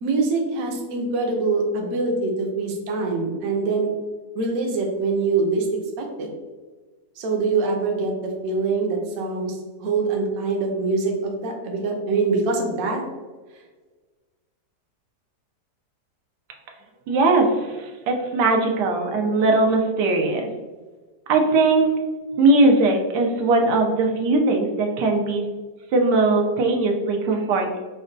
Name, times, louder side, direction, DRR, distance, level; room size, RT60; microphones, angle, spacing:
voice 1, 0.0-3.9 4.3-5.7 6.0-6.3 7.2-13.0, right 3 dB, 65° right, 1 dB, 1.0 m, -24 dB
voice 2, 17.1-20.5 21.3-21.9 22.4-25.4 25.9-27.8, right 2 dB, 90° right, 2 dB, 1.2 m, -20 dB
5.0 x 2.1 x 2.5 m, 1.3 s
omnidirectional pair, 1.8 m